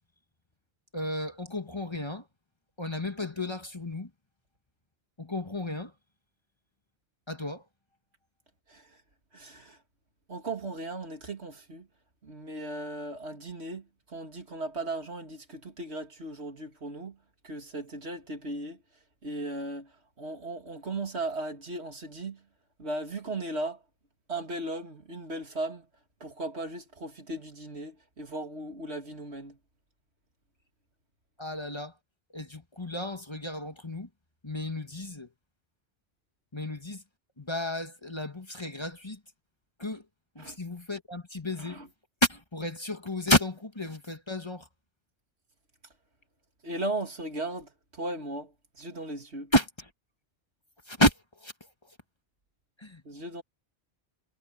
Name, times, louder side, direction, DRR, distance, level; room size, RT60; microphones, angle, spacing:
voice 1, 0.9-2.3 2.8-4.1 5.2-5.9 7.3-7.6 31.4-31.9 32.3-34.1 34.4-35.3 36.5-37.0 37.4-39.2 39.8-40.0 40.4-41.8 42.2-44.7 49.5-49.9 50.9-51.5 51.8-51.9 52.8-53.0, left 1 dB, 25° left, 1.8 m, -31 dB
voice 2, 9.3-9.8 10.3-11.9 12.2-17.2 17.4-18.8 19.2-19.9 20.2-22.4 22.8-23.8 24.3-25.9 26.2-29.6 40.4-40.6 41.7-41.9 46.6-49.5 53.0-53.4, right 2 dB, 85° right, 2.9 m, -37 dB
omnidirectional pair, 1.1 m